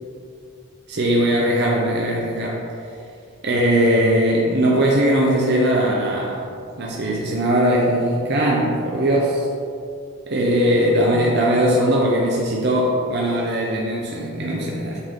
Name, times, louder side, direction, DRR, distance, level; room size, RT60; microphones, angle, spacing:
voice 1, 0.9-2.7 3.4-6.4 6.8-9.5 10.3-15.0, equal, 50° right, -3 dB, 0.7 m, -19 dB
8.2 x 3.7 x 3.7 m, 2.4 s
head